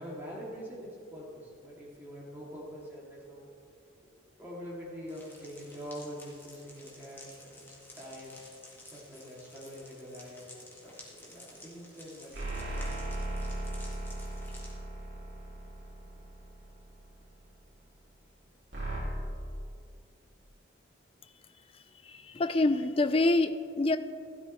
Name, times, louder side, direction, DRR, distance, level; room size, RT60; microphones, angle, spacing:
voice 1, 0.0-3.5 4.4-8.4 8.9-12.7 22.3-22.4 22.7-23.1, equal, 10° right, -7 dB, 3.1 m, -45 dB
sound 1, 5.1-14.7, left 1 dB, 10° left, 1.9 m, -53 dB
sound 2, 12.3-17.0 18.7-19.0, right 2 dB, 60° right, 3.4 m, -37 dB
voice 2, 21.7-24.0, left 2 dB, 30° left, 11 dB, 0.4 m, -27 dB
16.0 x 12.0 x 3.4 m, 2.5 s
head